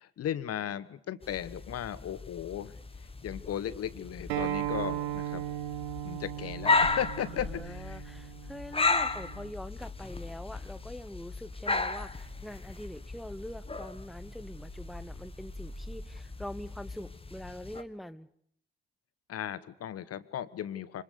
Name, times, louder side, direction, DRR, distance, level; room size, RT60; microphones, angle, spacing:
voice 1, 0.0-2.7 3.2-5.4 6.0-8.0 19.3-21.0, left 10 dB, 55° left, 15 dB, 1.3 m, -36 dB
sound 1, 1.2-17.8, left 3 dB, 20° left, 1.8 m, -35 dB
Acoustic guitar, 4.3-9.5, right 12 dB, 80° right, 1.1 m, -37 dB
voice 2, 7.3-18.3, left 1 dB, ahead, 15 dB, 1.0 m, -44 dB
25.5 x 25.5 x 6.8 m, 0.67 s
figure-of-eight pair, 45°, 30 cm